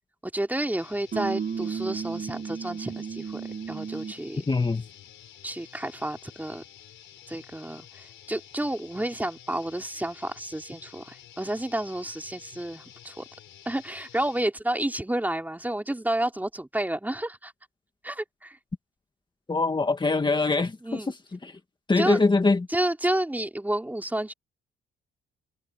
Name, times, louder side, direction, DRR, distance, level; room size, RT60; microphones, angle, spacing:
voice 1, 0.2-3.4 3.7-4.4 5.4-6.6 7.3-13.2 13.6-17.5 18.0-18.6 20.8-21.1 22.0-22.2 22.7-24.3, right 1 dB, 10° right, 3.0 m, -30 dB
sound 1, 0.8-14.5, left 11 dB, 75° left, 4.4 m, -50 dB
sound 2, 1.1-4.3, right 6 dB, 45° right, 6.0 m, -33 dB
voice 2, 4.5-4.9 19.5-21.6 21.9-22.7, left 3 dB, 25° left, 2.2 m, -24 dB
cardioid pair, 90°, 20 cm